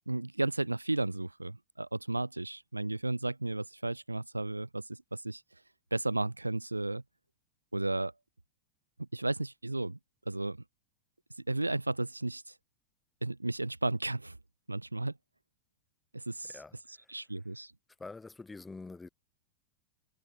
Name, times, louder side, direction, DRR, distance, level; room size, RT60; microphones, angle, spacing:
voice 1, 0.1-5.4 5.9-7.0 7.7-8.1 9.1-10.0 10.3-10.6 11.5-12.5 13.2-14.4 14.7-15.1 16.1-16.6 16.9-17.7, right 2 dB, 85° right, 0.7 m, -33 dB
voice 2, 18.0-19.1, left 3 dB, 10° left, 4.2 m, -45 dB
figure-of-eight pair, 90°, 0 cm